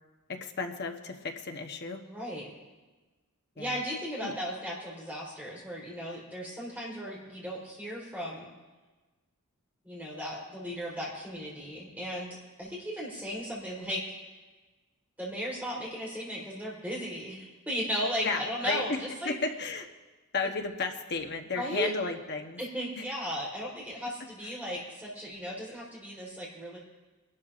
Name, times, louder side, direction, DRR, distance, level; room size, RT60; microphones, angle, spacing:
voice 1, 0.3-2.0 3.6-3.8 4.2-4.3 18.2-19.0 19.2-19.9 20.3-22.6 23.0-23.1 24.4-24.5, left 4 dB, 50° left, 4 dB, 1.0 m, -33 dB
voice 2, 2.1-2.5 3.5-8.5 9.8-14.0 15.2-19.3 21.5-21.9 22.6-26.8, equal, 5° right, -5 dB, 3.7 m, -36 dB
24.5 x 12.0 x 2.5 m, 1.2 s
head